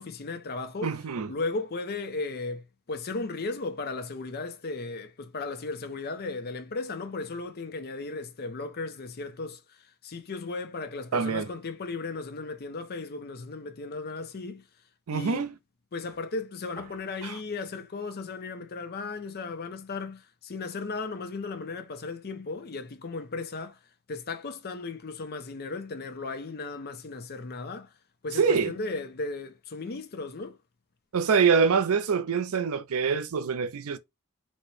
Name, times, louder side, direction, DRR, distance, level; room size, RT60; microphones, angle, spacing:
voice 1, 0.0-1.0 1.3-14.6 15.1-15.5 15.9-23.8 24.1-27.9 28.2-30.6, left 3 dB, 45° left, 0.6 m, -36 dB
voice 2, 0.8-1.3 11.1-11.5 15.1-15.5 17.2-17.4 28.4-28.7 31.1-34.0, right 5 dB, 70° right, 0.4 m, -25 dB
4.2 x 2.2 x 3.1 m
head